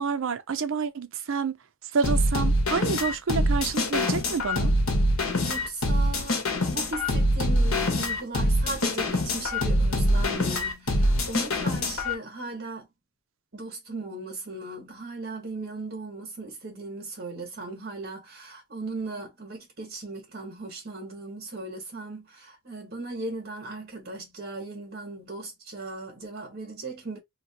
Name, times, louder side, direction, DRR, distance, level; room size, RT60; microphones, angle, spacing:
voice 1, 0.0-1.6 1.9-4.7, right 5 dB, 65° right, 0.5 m, -28 dB
sound 1, 2.0-12.1, left 1 dB, 75° left, 1.3 m, -24 dB
voice 2, 5.4-6.4 6.7-12.9 13.5-27.2, right 2 dB, 50° right, 1.5 m, -37 dB
3.0 x 2.9 x 2.8 m
head